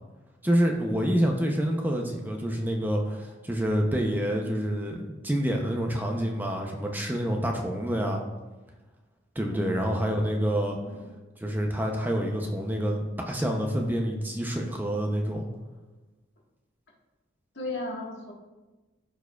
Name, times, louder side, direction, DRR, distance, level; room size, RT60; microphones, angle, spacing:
voice 1, 0.4-8.2 9.4-10.8 11.4-15.5, equal, 10° right, 1 dB, 0.6 m, -27 dB
voice 2, 9.5-9.9 10.8-11.1 17.5-18.3, left 2 dB, 75° left, -2 dB, 1.6 m, -36 dB
13.5 x 4.6 x 2.3 m, 1.2 s
head